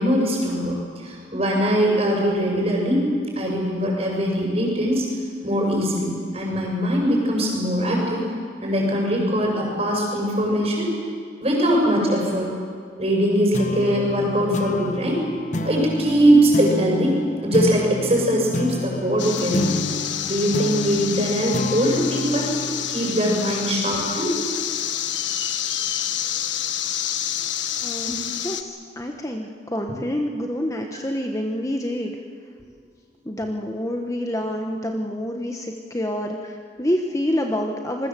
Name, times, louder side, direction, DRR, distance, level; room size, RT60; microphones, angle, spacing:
voice 1, 0.0-3.0 3.3-5.1 5.4-8.3 8.6-10.9 11.4-12.5 13.0-15.2 15.6-19.7 20.2-22.5 22.9-24.3 28.0-28.2, equal, 35° right, -1 dB, 6.8 m, -21 dB
sound 1, 13.5-24.4, left 1 dB, 40° left, 1.2 m, -30 dB
sound 2, 19.2-28.6, left 10 dB, 85° left, 1.3 m, -28 dB
voice 2, 27.8-32.1 33.2-38.1, equal, 15° left, 3 dB, 1.2 m, -27 dB
26.5 x 21.0 x 7.7 m, 2.1 s
head